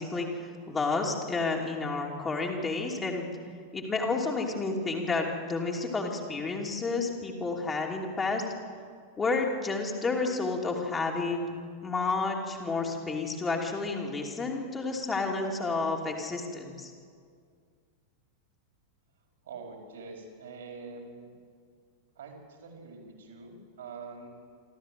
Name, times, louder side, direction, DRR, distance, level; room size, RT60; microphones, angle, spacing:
voice 1, 0.0-3.2 3.7-8.5 9.2-11.5 11.8-16.9, left 3 dB, 20° left, 0 dB, 2.8 m, -30 dB
voice 2, 19.4-21.3 22.2-24.3, right 4 dB, 65° right, 2 dB, 4.5 m, -45 dB
26.5 x 13.5 x 7.7 m, 2.1 s
figure-of-eight pair, 90°, 0 cm